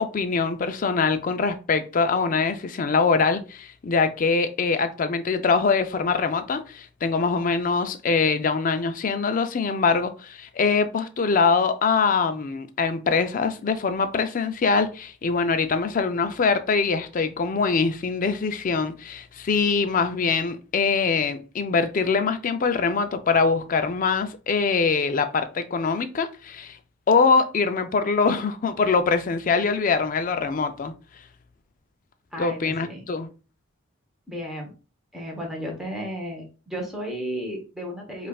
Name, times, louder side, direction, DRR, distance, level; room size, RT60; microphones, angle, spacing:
voice 1, 0.0-26.8 27.1-30.9 32.4-33.3, left 4 dB, 40° left, 0.4 m, -23 dB
voice 2, 32.3-33.1 34.3-34.7 35.1-38.3, equal, ahead, 0.9 m, -33 dB
5.3 x 2.4 x 2.3 m
head